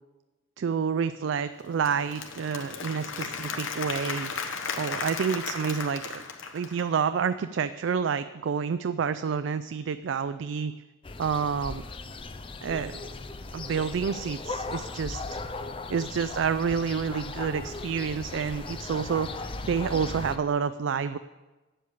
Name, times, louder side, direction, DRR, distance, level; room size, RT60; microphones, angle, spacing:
voice 1, 0.6-4.3 4.8-6.2 6.5-10.7 11.2-11.8 12.6-13.0 13.5-15.4 15.9-21.2, right 6 dB, 70° right, 12 dB, 0.3 m, -29 dB
Applause / Crowd, 1.6-7.0, left 5 dB, 85° left, 1.1 m, -35 dB
sound 1, 11.0-20.4, left 3 dB, 25° left, 0.5 m, -37 dB
8.3 x 7.7 x 8.3 m, 1.2 s
head